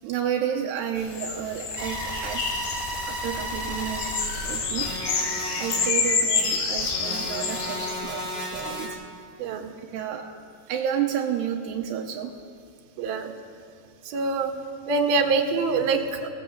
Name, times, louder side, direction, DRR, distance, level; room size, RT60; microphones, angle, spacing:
voice 1, 0.0-2.5 3.1-5.0 5.6-9.0 9.9-10.3 10.7-12.4, right 8 dB, 85° right, 1 dB, 3.1 m, -31 dB
sound 1, 1.0-7.9, left 5 dB, 65° left, 4.1 m, -29 dB
sound 2, 1.8-8.9, equal, 15° right, 5.2 m, -33 dB
voice 2, 9.4-9.7 13.0-13.3 14.0-14.5 14.9-16.3, right 4 dB, 65° right, 3 dB, 3.3 m, -24 dB
23.5 x 18.0 x 8.0 m, 2.3 s
omnidirectional pair, 4.8 m